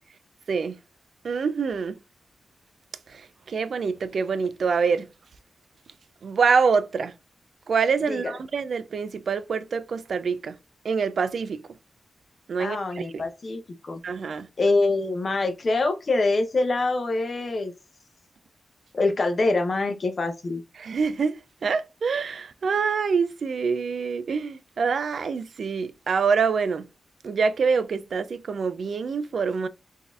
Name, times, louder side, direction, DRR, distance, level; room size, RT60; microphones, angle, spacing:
voice 1, 0.5-0.8 1.2-1.9 3.1-5.1 6.2-7.1 7.7-10.6 10.8-11.6 12.5-13.2 14.0-14.5 20.8-21.4 21.6-26.9 27.2-29.7, right 5 dB, 60° right, 0.3 m, -25 dB
voice 2, 8.1-8.4 12.6-14.0 14.6-17.7 18.9-20.6, left 2 dB, 40° left, 0.6 m, -25 dB
3.9 x 2.6 x 2.4 m
wide cardioid pair, 145°, 0 cm